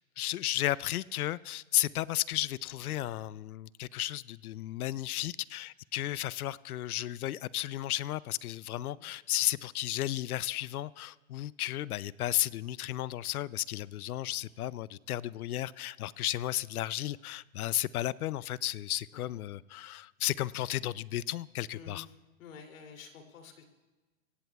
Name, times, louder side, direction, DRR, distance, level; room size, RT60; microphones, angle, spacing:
voice 1, 0.2-22.1, left 14 dB, 85° left, 0.6 m, -34 dB
voice 2, 21.7-22.1 22.4-23.6, left 6 dB, 65° left, 2.9 m, -50 dB
25.5 x 16.5 x 2.3 m
hypercardioid pair, 140°, 43 cm